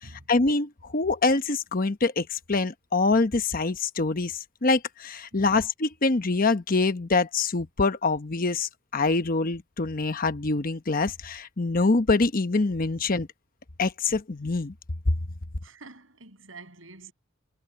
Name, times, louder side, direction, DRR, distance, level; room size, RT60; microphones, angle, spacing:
voice 1, 0.3-13.3 13.8-14.7, left 3 dB, 45° left, 1.0 m, -25 dB
voice 2, 15.6-17.1, right 3 dB, 75° right, 7.2 m, -47 dB
head